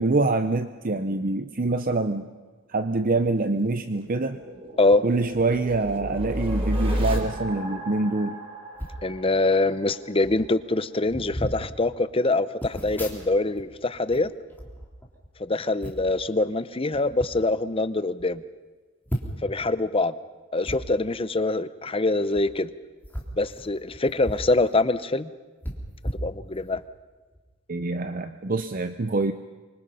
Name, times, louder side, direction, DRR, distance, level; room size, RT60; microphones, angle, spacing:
voice 1, 0.0-2.3 2.7-4.4 5.0-8.4 27.7-29.3, right 3 dB, 40° right, 9 dB, 0.7 m, -25 dB
sound 1, 3.3-10.0, equal, 25° right, 3.8 m, -32 dB
sound 2, 8.7-9.0 9.9-10.0 10.2-10.5 11.0-11.6 12.6-13.6 13.9-15.3 15.8-16.2 16.9-17.3 17.8-17.9 18.2-18.3 19.1-19.5 20.6-20.8 22.2-22.4 23.0-24.5 24.8-24.9 25.6-26.8 27.3-27.5, equal, 10° left, 3.2 m, -35 dB
voice 2, 9.0-14.3 15.4-18.4 19.4-20.1 20.5-22.7 23.4-25.3 26.2-26.8, left 2 dB, 25° left, 13 dB, 0.8 m, -24 dB
26.0 x 24.5 x 5.6 m, 1.3 s
head